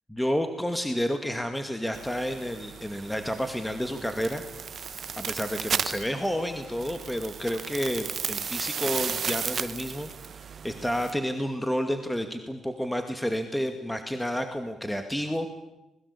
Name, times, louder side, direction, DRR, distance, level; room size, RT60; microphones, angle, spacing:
voice 1, 0.1-15.5, equal, 5° left, 7 dB, 2.3 m, -30 dB
sound 1, 1.9-11.1, right 7 dB, 50° right, 1.2 m, -35 dB
26.0 x 21.5 x 8.6 m, 0.95 s
cardioid pair, 90°, 0 cm